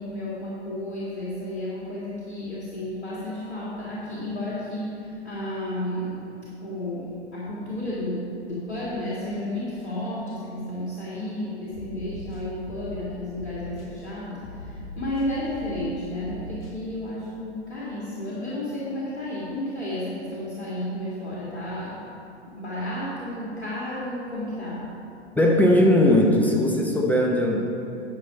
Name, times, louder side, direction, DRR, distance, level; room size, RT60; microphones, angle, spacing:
voice 1, 0.0-6.2 6.6-22.0 22.4-24.9, left 1 dB, 70° left, -8 dB, 2.2 m, -32 dB
sound 1, 11.7-13.0 13.4-13.9 14.4-15.9 16.2-16.7, left 2 dB, 55° left, 1.9 m, -39 dB
voice 2, 25.4-27.6, left 1 dB, 5° left, -1 dB, 0.7 m, -19 dB
10.5 x 5.8 x 5.2 m, 2.7 s
figure-of-eight pair, 100°, 34 cm